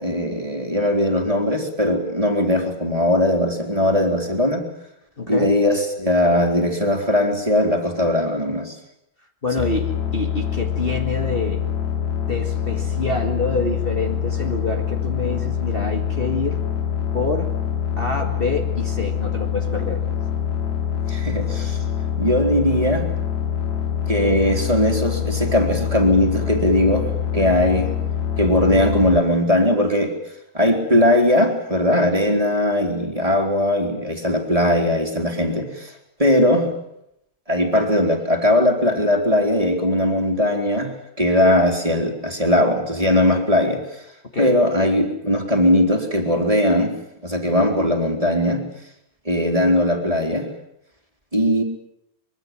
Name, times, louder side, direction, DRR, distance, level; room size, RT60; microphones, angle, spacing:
voice 1, 0.0-4.6 5.3-8.8 9.6-9.7 21.1-21.8 22.2-23.1 24.1-27.1 27.3-27.9 28.4-30.1 30.5-35.9 36.2-36.7 37.5-40.9 41.2-43.8 44.4-46.9 47.2-48.6 49.2-50.5 51.3-51.6, left 1 dB, 10° right, 3 dB, 2.9 m, -19 dB
voice 2, 5.2-5.5 9.4-11.6 12.3-16.6 17.1-17.5 18.0-20.0 44.3-44.6, left 3 dB, 60° left, 3 dB, 0.5 m, -26 dB
sound 1, 9.6-29.2, left 8 dB, 80° left, 4.5 m, -25 dB
24.5 x 23.0 x 7.6 m, 0.78 s
omnidirectional pair, 4.6 m